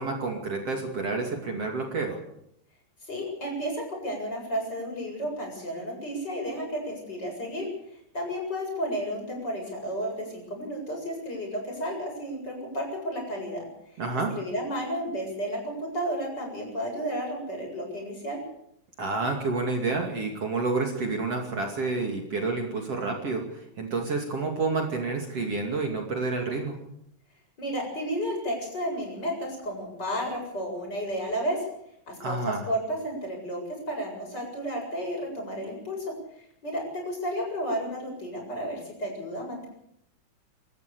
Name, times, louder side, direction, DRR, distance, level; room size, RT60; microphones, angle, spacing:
voice 1, 0.0-2.2 14.0-14.3 19.0-26.8 32.2-32.7, right 3 dB, 50° right, 2 dB, 3.4 m, -29 dB
voice 2, 3.1-7.6 8.1-13.7 13.9-14.0 14.3-18.4 27.6-31.6 32.1-33.6 33.9-36.1 36.6-39.7, equal, 30° left, 0 dB, 8.2 m, -32 dB
28.0 x 14.0 x 7.0 m, 0.75 s
omnidirectional pair, 3.7 m